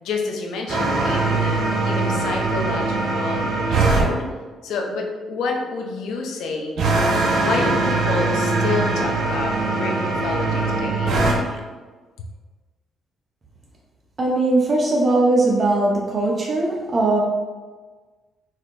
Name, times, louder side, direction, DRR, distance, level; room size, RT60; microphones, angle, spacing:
voice 1, 0.0-3.4 3.8-4.3 4.6-6.8 7.4-11.7 12.2-12.3, left 3 dB, 80° left, 1 dB, 0.6 m, -29 dB
sound 1, 0.7-4.1 6.8-11.4, right 3 dB, 70° right, 1.0 m, -21 dB
voice 2, 14.2-17.2, right 2 dB, 40° right, -3 dB, 0.8 m, -19 dB
6.4 x 2.8 x 2.6 m, 1.3 s
cardioid pair, 90°, 0 cm